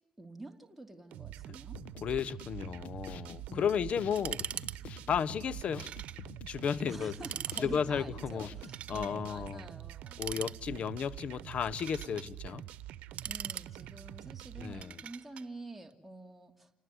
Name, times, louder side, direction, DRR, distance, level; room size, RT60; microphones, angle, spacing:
voice 1, 0.2-1.8 3.5-3.8 6.9-10.3 13.2-16.7, right 2 dB, 5° right, 2.9 m, -47 dB
sound 1, 1.1-14.8, right 13 dB, 85° right, 0.9 m, -46 dB
sound 2, 1.7-8.8, left 7 dB, 75° left, 1.7 m, -49 dB
voice 2, 2.0-4.4 5.1-5.9 6.5-7.1 7.6-8.5 8.9-9.7 10.2-12.6 14.6-15.0, left 7 dB, 60° left, 1.0 m, -33 dB
sound 3, 4.2-4.8 5.0-5.1 5.8-6.2 6.6-6.7 7.1-7.7 8.6-9.2 10.1-10.9 11.5-12.3 12.9-14.1 14.8-15.5, right 9 dB, 65° right, 1.2 m, -41 dB
28.0 x 19.5 x 9.7 m
cardioid pair, 85°, 2 cm